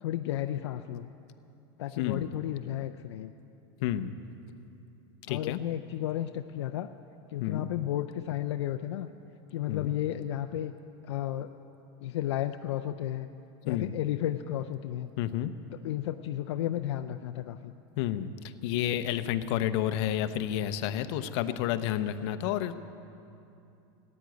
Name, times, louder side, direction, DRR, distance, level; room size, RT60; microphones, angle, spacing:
voice 1, 0.0-1.1 1.8-3.3 5.3-6.9 7.3-9.1 9.5-10.7 11.0-11.5 12.0-13.3 13.6-15.1 15.7-17.7, left 12 dB, 90° left, 8 dB, 0.5 m, -33 dB
voice 2, 3.8-4.1 5.3-5.6 7.4-7.7 9.7-9.9 13.7-13.9 15.2-15.5 18.0-18.3 18.6-22.8, left 11 dB, 65° left, 10 dB, 0.8 m, -30 dB
15.5 x 9.8 x 9.1 m, 2.7 s
supercardioid pair, 125°, 14 cm